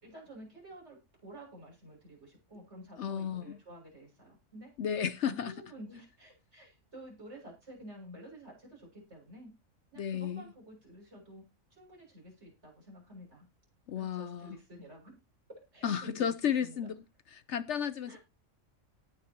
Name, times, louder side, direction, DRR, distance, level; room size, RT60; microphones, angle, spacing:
voice 1, 0.0-4.7 5.2-9.5 9.9-11.4 11.8-13.4 13.9-15.2 15.5-16.2 16.6-16.9 18.1-18.2, right 1 dB, 55° right, 7.4 m, -50 dB
voice 2, 3.0-3.6 4.8-5.5 10.0-10.4 13.9-14.6 15.8-17.0 17.3-18.2, left 8 dB, 60° left, 1.0 m, -33 dB
18.0 x 6.6 x 3.0 m
omnidirectional pair, 1.4 m